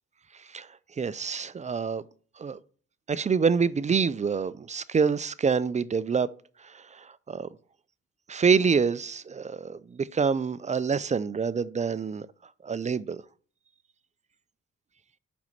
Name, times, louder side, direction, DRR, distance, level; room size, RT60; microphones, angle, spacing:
voice 1, 0.3-0.7 1.0-2.0 2.4-2.6 3.1-6.3 6.6-7.5 8.3-12.3 12.6-13.2, right 5 dB, 25° right, 0.4 m, -26 dB
5.9 x 5.3 x 5.8 m
cardioid pair, 90°, 30 cm